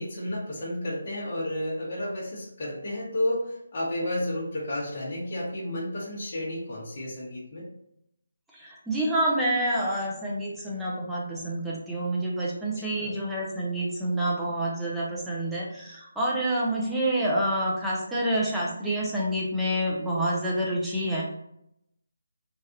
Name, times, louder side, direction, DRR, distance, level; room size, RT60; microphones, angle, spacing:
voice 1, 0.0-7.7 12.8-13.2, left 1 dB, 35° left, -6 dB, 0.9 m, -32 dB
voice 2, 8.5-21.2, right 1 dB, 5° right, -6 dB, 0.5 m, -28 dB
3.2 x 2.4 x 2.7 m, 0.77 s
hypercardioid pair, 170°, 0 cm